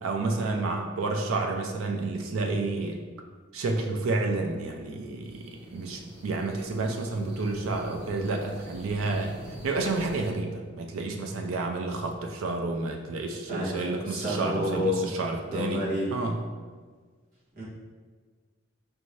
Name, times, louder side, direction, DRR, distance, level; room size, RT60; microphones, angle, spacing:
voice 1, 0.0-3.0 3.5-9.3 9.6-15.8 16.1-16.4, right 3 dB, 90° right, 2 dB, 0.4 m, -30 dB
sound 1, 5.2-10.3, equal, 25° right, 0.9 m, -44 dB
voice 2, 13.5-15.1 15.5-16.1 17.6-17.7, left 1 dB, 45° right, -9 dB, 1.3 m, -30 dB
4.5 x 2.6 x 3.1 m, 1.5 s
head